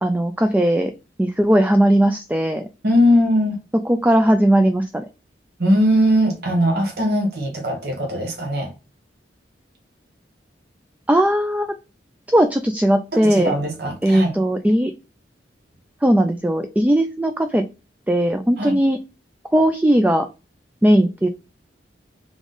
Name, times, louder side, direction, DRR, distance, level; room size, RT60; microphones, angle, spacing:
voice 1, 0.0-0.9 1.2-2.7 3.9-5.1 11.1-11.8 12.3-13.5 14.0-14.9 16.0-17.7 18.1-19.0 19.5-20.3 20.8-21.3, right 1 dB, 10° right, 0.3 m, -18 dB
voice 2, 2.8-3.6 5.6-8.7 13.1-14.4 18.6-18.8, equal, 65° right, 1.4 m, -20 dB
3.5 x 3.5 x 3.8 m
head